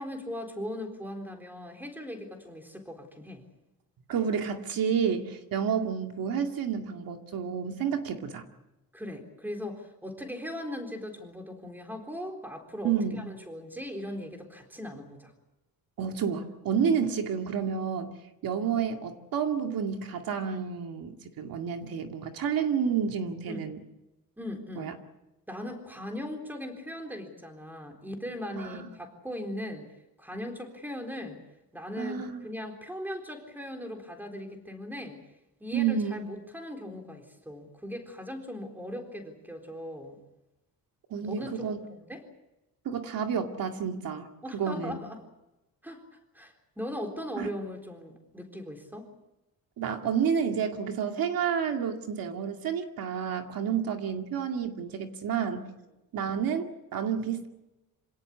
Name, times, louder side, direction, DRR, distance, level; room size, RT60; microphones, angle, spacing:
voice 1, 0.0-3.4 8.9-15.3 23.5-23.6 24.4-24.9 25.5-29.9 30.2-31.4 31.7-35.2 35.6-40.2 41.2-42.2 44.4-45.2 45.8-46.0 46.3-49.1 53.6-53.7, left 1 dB, 5° right, 4 dB, 3.9 m, -39 dB
voice 2, 4.1-8.4 12.8-13.2 16.0-18.2 18.4-23.8 24.8-24.9 28.6-28.9 32.0-32.5 35.7-36.2 41.1-41.8 42.9-44.3 44.5-45.0 47.4-47.5 49.8-55.7 56.1-57.5, right 7 dB, 70° right, 4 dB, 2.3 m, -30 dB
27.0 x 18.0 x 8.4 m, 0.98 s
cardioid pair, 155°, 36 cm